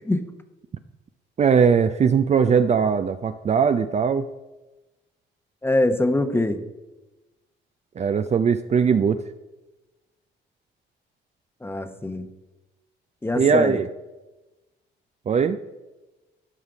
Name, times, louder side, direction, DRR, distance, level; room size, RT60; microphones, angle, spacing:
voice 1, 1.4-4.3 8.0-9.2 13.4-13.9 15.3-15.6, right 6 dB, 35° right, 10 dB, 0.4 m, -20 dB
voice 2, 5.6-6.6 11.6-12.3 13.2-13.8, left 1 dB, 10° left, 9 dB, 0.9 m, -23 dB
11.5 x 5.7 x 5.0 m, 1.1 s
cardioid pair, 90°, 20 cm